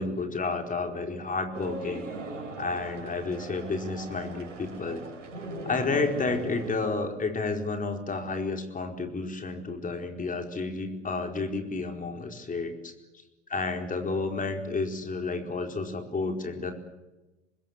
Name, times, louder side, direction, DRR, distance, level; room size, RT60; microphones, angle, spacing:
voice 1, 0.0-2.0 2.6-5.0 5.6-12.9 13.5-16.7, left 3 dB, 20° left, 4 dB, 4.6 m, -31 dB
sound 1, 1.5-6.8, right 2 dB, 80° right, 6.0 m, -39 dB
26.5 x 21.0 x 8.4 m, 1.1 s
hypercardioid pair, 80°, 37 cm